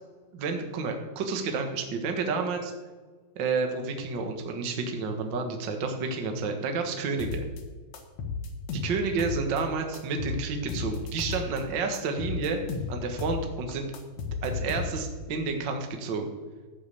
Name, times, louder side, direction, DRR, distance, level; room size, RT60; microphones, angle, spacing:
voice 1, 0.3-2.7 3.3-7.5 8.7-12.6 12.9-13.9 14.2-16.3, right 4 dB, 70° right, 4 dB, 1.0 m, -30 dB
sound 1, 7.2-7.6 7.9-9.6 9.9-11.6 11.9-13.4 13.7-15.2, left 5 dB, 60° left, 2.1 m, -34 dB
13.5 x 6.5 x 8.4 m, 1.4 s
omnidirectional pair, 4.6 m